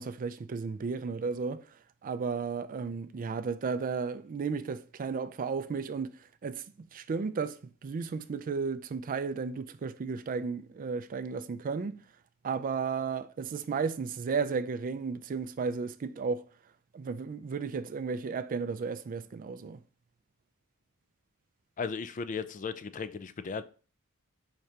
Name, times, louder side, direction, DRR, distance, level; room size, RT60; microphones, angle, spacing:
voice 1, 0.0-1.6 2.0-6.1 6.4-12.0 12.4-16.4 16.9-19.8, right 5 dB, 40° right, 0.3 m, -34 dB
voice 2, 21.8-23.7, left 5 dB, 35° left, 0.4 m, -36 dB
4.9 x 3.3 x 2.8 m
head